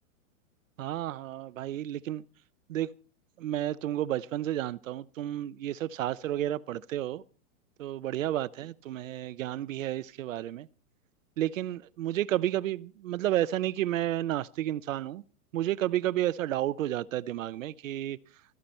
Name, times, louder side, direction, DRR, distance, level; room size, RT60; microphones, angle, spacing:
voice 1, 0.8-2.2 2.7-2.9 3.4-7.2 7.8-10.7 11.4-15.2 15.5-18.2, right 13 dB, 65° right, 0.8 m, -31 dB
17.0 x 13.5 x 4.4 m
supercardioid pair, 170°, 44 cm